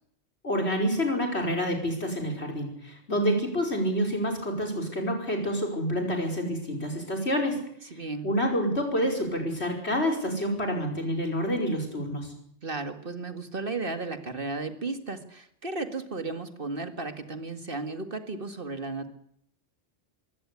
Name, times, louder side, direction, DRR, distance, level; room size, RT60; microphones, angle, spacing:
voice 1, 0.4-12.3, equal, 70° left, 3 dB, 5.5 m, -28 dB
voice 2, 7.9-8.3 12.6-19.1, right 3 dB, 55° right, 8 dB, 2.2 m, -34 dB
22.5 x 17.5 x 8.4 m, 0.67 s
omnidirectional pair, 1.1 m